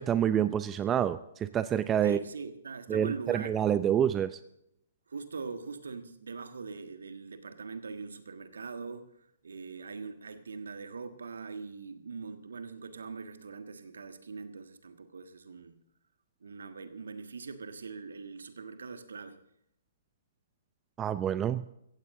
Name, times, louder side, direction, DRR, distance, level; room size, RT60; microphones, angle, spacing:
voice 1, 0.0-2.2 2.9-4.4 21.0-21.7, right 9 dB, 20° right, 13 dB, 0.6 m, -27 dB
voice 2, 2.0-3.6 5.1-15.8 16.4-19.4, right 4 dB, 70° right, 9 dB, 1.5 m, -42 dB
16.0 x 15.5 x 3.7 m, 0.76 s
figure-of-eight pair, 125°, 0 cm